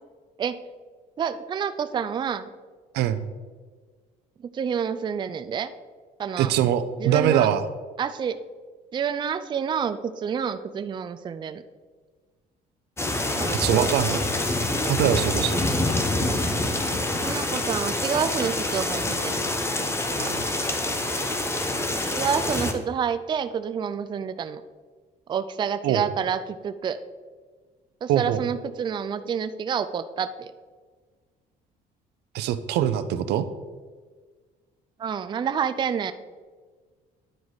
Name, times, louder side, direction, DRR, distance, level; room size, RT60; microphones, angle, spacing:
voice 1, 1.2-2.5 4.5-5.7 6.2-6.5 7.0-7.5 8.0-8.3 8.9-11.6 13.4-13.9 16.2-16.6 17.2-19.5 22.1-24.6 25.3-27.0 28.0-30.5 35.0-36.1, right 7 dB, 25° right, 11 dB, 0.4 m, -28 dB
voice 2, 6.4-7.6 13.6-14.2 14.8-15.6 20.2-20.4 25.8-26.0 28.1-28.4 32.3-33.5, right 10 dB, 80° right, 12 dB, 0.5 m, -23 dB
sound 1, 13.0-22.7, left 2 dB, 15° left, 0.9 m, -26 dB
10.0 x 4.7 x 4.0 m, 1.5 s
cardioid pair, 110°, 17 cm